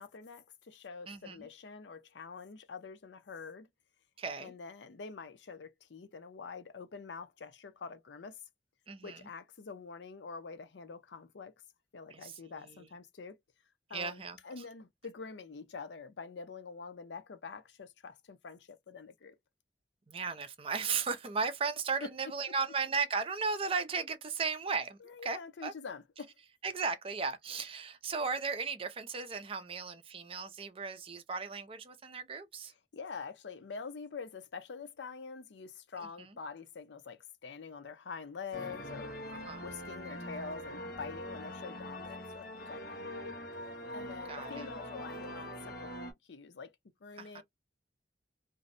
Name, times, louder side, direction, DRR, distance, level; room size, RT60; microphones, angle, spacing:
voice 1, 0.0-3.7 4.4-8.4 9.0-11.5 11.9-13.4 13.9-19.4 22.0-22.1 25.0-26.3 32.9-39.1 39.6-43.4 43.9-45.9 46.3-46.7 47.0-47.4, left 5 dB, 80° left, 0.5 m, -46 dB
voice 2, 1.1-1.5 4.2-4.5 8.9-9.2 12.1-12.3 13.9-14.6 20.1-25.7 26.6-32.7 36.2-36.3 39.4-39.6 44.3-44.7 47.2-47.4, right 5 dB, 30° right, 0.5 m, -36 dB
sound 1, 38.5-46.1, left 1 dB, 60° left, 1.0 m, -43 dB
2.6 x 2.1 x 2.5 m
head